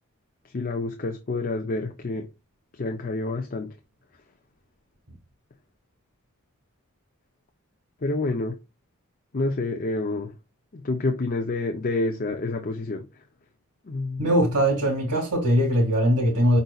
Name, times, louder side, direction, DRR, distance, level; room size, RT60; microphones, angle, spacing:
voice 1, 0.5-2.3 2.8-3.7 8.0-8.6 9.3-10.3 10.7-13.0 13.9-14.3, left 2 dB, 40° left, 0.6 m, -28 dB
voice 2, 14.2-16.6, equal, 85° right, 2.0 m, -21 dB
5.4 x 4.0 x 2.3 m
head